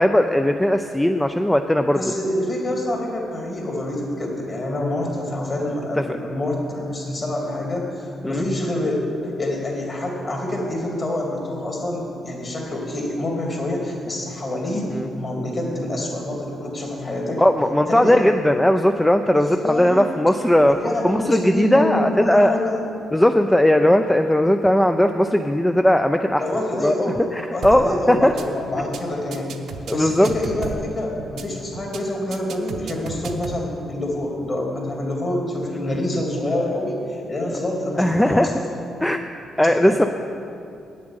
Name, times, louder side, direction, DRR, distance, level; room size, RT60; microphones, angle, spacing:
voice 1, 0.0-2.0 6.1-6.2 8.2-8.4 14.9-15.1 17.4-20.8 21.0-22.6 23.1-26.4 26.8-26.9 27.3-28.3 29.9-30.3 35.9-36.0 38.0-38.5 39.0-39.2 39.6-40.1, left 1 dB, 5° left, 6 dB, 0.4 m, -18 dB
voice 2, 1.9-9.1 9.4-17.4 17.9-18.2 19.4-20.1 20.6-22.8 26.4-27.2 27.5-29.5 29.9-38.6 39.6-40.1, left 1 dB, 40° left, -1 dB, 2.7 m, -26 dB
sound 1, 27.6-27.9 28.2-28.4 28.7-29.0 29.3-30.9 31.2-31.4 31.7-32.0 32.3-33.6, right 4 dB, 70° right, 0.8 m, -33 dB
8.7 x 7.3 x 8.9 m, 2.6 s
cardioid pair, 95°, 0 cm